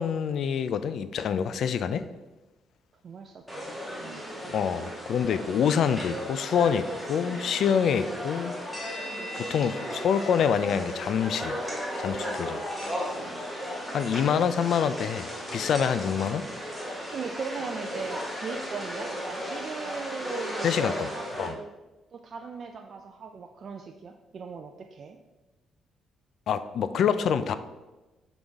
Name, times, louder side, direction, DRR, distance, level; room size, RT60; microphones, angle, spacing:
voice 1, 0.0-2.0 4.5-8.6 9.4-11.6 12.0-12.6 13.9-16.4 20.6-21.1 21.4-21.6 26.5-27.5, left 7 dB, 70° left, 12 dB, 0.3 m, -26 dB
voice 2, 3.0-4.2 17.1-21.7 22.1-25.2, right 5 dB, 55° right, 4 dB, 0.4 m, -39 dB
sound 1, 3.5-21.5, equal, 5° left, 1.6 m, -35 dB
6.8 x 3.9 x 3.5 m, 1.1 s
cardioid pair, 90°, 0 cm